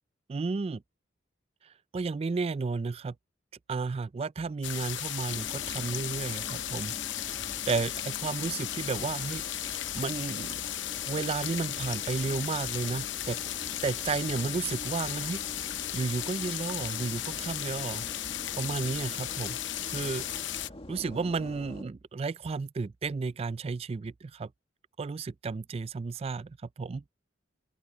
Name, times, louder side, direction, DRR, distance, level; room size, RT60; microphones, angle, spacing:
voice 1, 0.3-0.8 1.9-3.1 3.7-7.3 7.7-10.6 11.1-13.5 13.8-15.4 15.9-18.1 18.6-19.6 19.9-20.3 20.9-24.5 25.0-27.0, right 4 dB, 30° right, 0.3 m, -33 dB
sound 1, 4.6-20.7, left 12 dB, 70° left, 0.8 m, -35 dB
sound 2, 4.9-13.6, right 4 dB, 80° right, 7.7 m, -62 dB
sound 3, 5.3-21.8, left 1 dB, 30° left, 2.0 m, -46 dB
open air
head